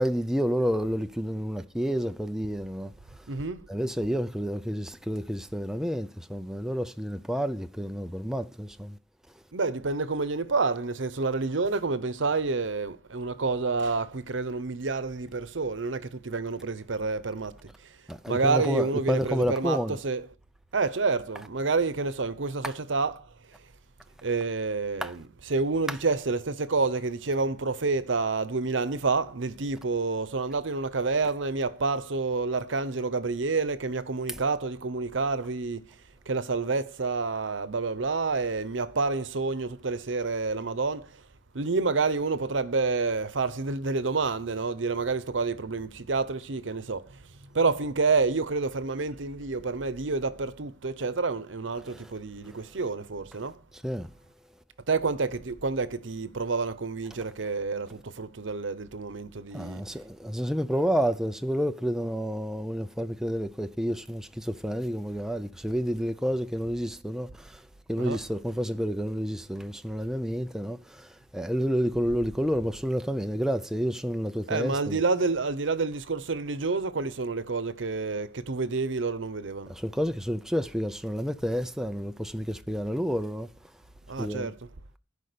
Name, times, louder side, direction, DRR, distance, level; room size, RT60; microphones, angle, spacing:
voice 1, 0.0-2.9 3.7-9.0 18.1-19.9 25.0-25.1 51.9-52.0 53.8-54.1 59.5-67.6 67.9-75.0 79.7-83.5 84.2-84.5, equal, 5° right, 0.5 m, -29 dB
voice 2, 3.3-3.7 9.5-18.0 18.3-20.3 20.7-23.7 24.2-36.0 36.3-41.2 41.5-53.6 54.9-59.8 68.0-68.2 74.5-79.7 84.1-84.7, right 4 dB, 85° right, 0.9 m, -29 dB
15.0 x 5.1 x 6.8 m
head